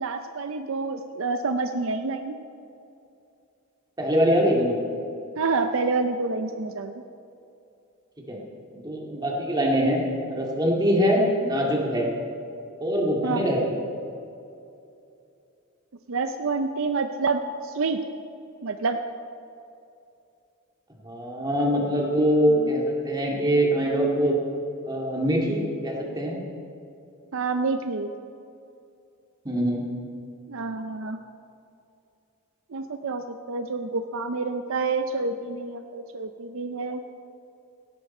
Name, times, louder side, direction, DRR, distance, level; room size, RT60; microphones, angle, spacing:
voice 1, 0.0-2.4 5.4-7.0 13.2-13.5 16.1-18.0 18.6-19.0 22.5-22.8 27.3-28.1 30.5-31.2 32.7-37.0, right 4 dB, 65° right, 8 dB, 0.6 m, -28 dB
voice 2, 4.0-4.8 8.3-8.4 8.7-10.0 10.3-12.1 12.8-13.8 21.0-24.4 24.8-26.4 29.4-29.9, equal, 20° right, -1 dB, 2.1 m, -23 dB
17.5 x 12.0 x 4.3 m, 2.7 s
head